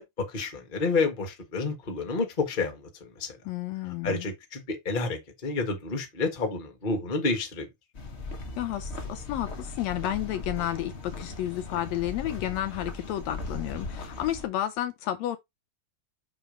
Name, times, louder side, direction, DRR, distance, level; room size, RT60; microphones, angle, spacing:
voice 1, 0.0-3.4 4.0-7.7, left 3 dB, 25° left, 1.1 m, -29 dB
voice 2, 3.5-4.3 8.6-15.4, left 12 dB, 75° left, 1.7 m, -31 dB
sound 1, 7.9-14.5, left 3 dB, 60° left, 0.6 m, -38 dB
6.3 x 3.5 x 5.1 m
omnidirectional pair, 3.3 m